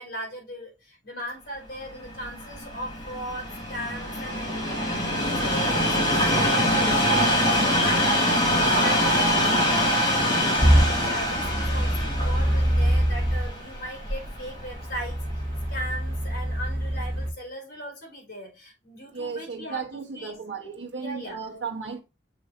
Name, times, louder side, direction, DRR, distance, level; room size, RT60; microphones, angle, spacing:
voice 1, 0.0-15.4 15.7-20.4 20.9-21.4, equal, 55° left, 4.6 m, -38 dB
Train, 1.9-15.1 15.8-15.9, equal, 25° left, 3.0 m, -24 dB
sound 1, 10.6-13.5 14.1-17.3, equal, 30° right, 2.2 m, -24 dB
voice 2, 19.1-22.0, right 5 dB, 85° right, 0.9 m, -34 dB
6.8 x 3.9 x 4.3 m
head